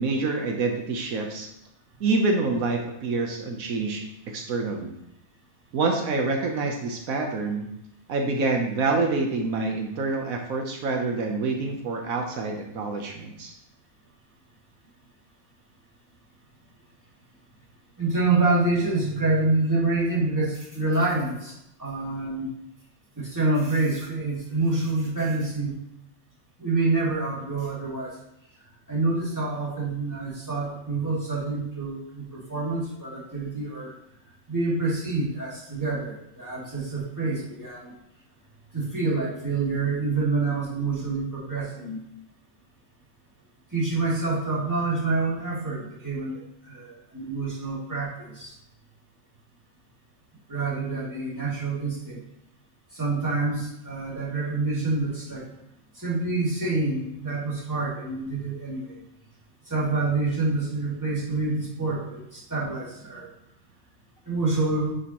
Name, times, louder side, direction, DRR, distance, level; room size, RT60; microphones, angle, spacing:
voice 1, 0.0-1.5 2.0-5.0 5.7-7.7 8.1-13.5, right 3 dB, 80° right, 2 dB, 1.3 m, -27 dB
voice 2, 18.0-22.5 23.2-25.8 26.6-28.2 28.9-33.9 34.5-37.9 38.7-42.0 43.7-48.5 50.5-52.2 52.9-55.5 55.9-59.0 59.7-63.3 64.3-64.9, right 3 dB, 15° right, -7 dB, 2.3 m, -27 dB
9.7 x 5.5 x 2.9 m, 0.80 s
omnidirectional pair, 1.4 m